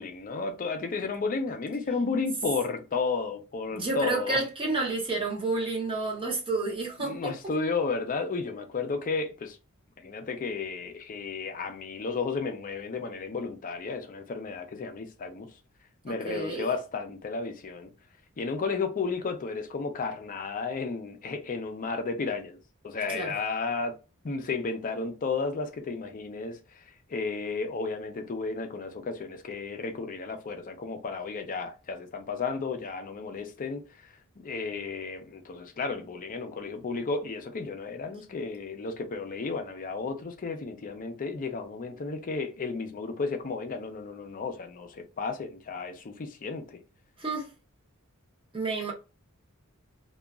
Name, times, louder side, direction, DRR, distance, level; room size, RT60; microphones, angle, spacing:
voice 1, 0.0-4.4 7.0-9.6 10.0-15.5 16.0-17.9 18.4-22.6 22.8-24.0 24.2-26.8 27.1-34.0 34.4-46.8, left 4 dB, 40° left, 0.4 m, -33 dB
voice 2, 3.7-7.3 16.1-16.7 23.1-23.3 47.2-47.5 48.5-48.9, right 3 dB, 25° right, 0.7 m, -30 dB
2.8 x 2.3 x 2.3 m
head